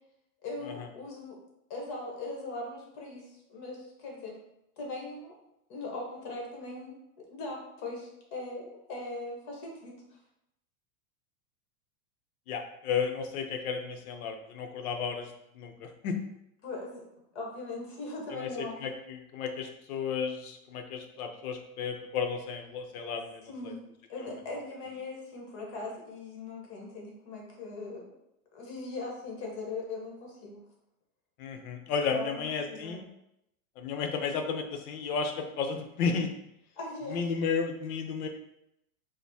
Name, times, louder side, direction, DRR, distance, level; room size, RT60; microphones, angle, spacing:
voice 1, 0.4-1.4 1.7-4.4 4.8-5.3 5.7-6.9 7.3-10.0 16.6-17.0 17.3-18.8 23.5-23.8 24.1-28.1 28.5-30.6 32.1-33.0 36.8-37.3, left 2 dB, 45° left, -1 dB, 1.1 m, -40 dB
voice 2, 12.5-15.3 15.5-16.2 18.3-18.5 18.8-23.7 31.4-33.0 33.8-36.3 37.1-38.3, left 5 dB, 70° left, 5 dB, 0.7 m, -33 dB
5.0 x 2.1 x 2.7 m, 0.82 s
supercardioid pair, 160°, 45 cm